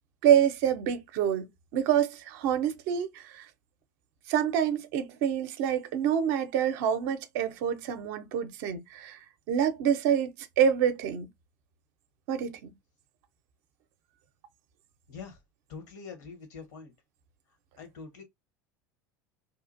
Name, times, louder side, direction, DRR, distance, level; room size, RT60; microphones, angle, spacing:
voice 1, 0.2-3.5 4.3-9.2 9.5-11.3 12.3-12.7, right 9 dB, 60° right, 0.5 m, -27 dB
voice 2, 15.1-15.4 15.7-16.9 17.8-18.2, left 5 dB, 60° left, 1.1 m, -44 dB
2.8 x 2.4 x 2.5 m
figure-of-eight pair, 75°, 10 cm